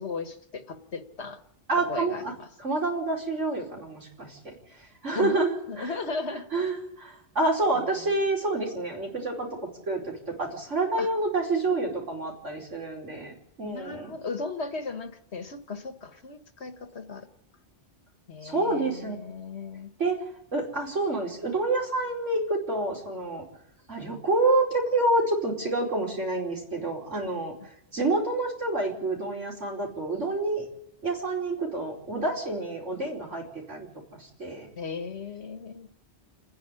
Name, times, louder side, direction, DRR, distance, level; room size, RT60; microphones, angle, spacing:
voice 1, 0.0-1.4 1.8-2.5 5.1-5.4 5.7-6.6 7.7-7.8 11.0-11.1 13.6-17.3 18.3-19.9 34.8-35.9, left 4 dB, 65° left, 8 dB, 1.7 m, -36 dB
voice 2, 1.7-2.3 2.6-5.9 6.3-9.5 9.9-14.1 18.4-19.2 20.0-20.2 20.5-23.4 23.9-27.5 27.9-30.7 31.0-34.7, right 2 dB, 85° right, -1 dB, 5.2 m, -28 dB
28.5 x 10.5 x 9.8 m, 0.79 s
omnidirectional pair, 1.2 m